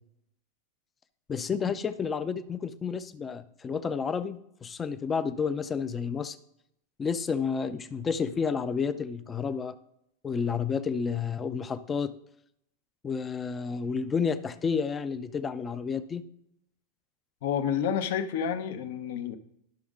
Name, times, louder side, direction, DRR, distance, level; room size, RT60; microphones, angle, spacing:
voice 1, 1.3-6.4 7.0-9.8 10.2-12.1 13.0-16.2, left 6 dB, 15° left, 13 dB, 0.4 m, -30 dB
voice 2, 17.4-19.4, left 8 dB, 60° left, 10 dB, 0.8 m, -29 dB
11.5 x 6.3 x 3.7 m, 0.76 s
supercardioid pair, 170°, 0 cm